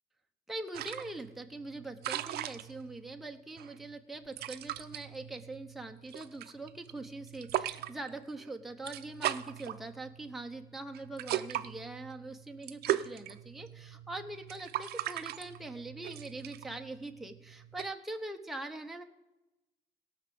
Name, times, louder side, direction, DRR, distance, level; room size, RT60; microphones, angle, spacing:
voice 1, 0.5-19.0, right 2 dB, ahead, 3 dB, 0.9 m, -43 dB
sound 1, 0.7-17.9, right 13 dB, 70° right, 0.6 m, -40 dB
17.0 x 5.9 x 6.9 m, 1.0 s
cardioid pair, 110°, 17 cm